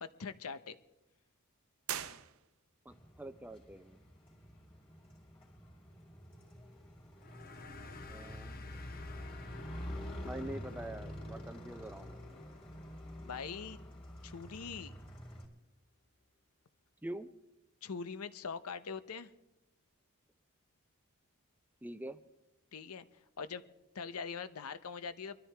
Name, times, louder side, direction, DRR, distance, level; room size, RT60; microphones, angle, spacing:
voice 1, 0.0-0.8 13.2-13.8 14.2-14.9 17.8-19.3 22.7-23.0 23.4-23.6 23.9-25.4, left 5 dB, 80° left, 13 dB, 0.7 m, -42 dB
sound 1, 1.8-2.9, right 10 dB, 65° right, 0.7 m, -42 dB
Motorcycle, 2.9-15.5, equal, 25° left, 2.8 m, -49 dB
voice 2, 2.9-4.0 8.1-8.6 10.2-12.4 17.0-17.3 21.8-22.2, right 1 dB, 10° right, 11 dB, 0.4 m, -45 dB
sound 2, 7.2-14.3, left 2 dB, 40° left, 0.8 m, -48 dB
23.5 x 13.0 x 3.3 m, 0.92 s
head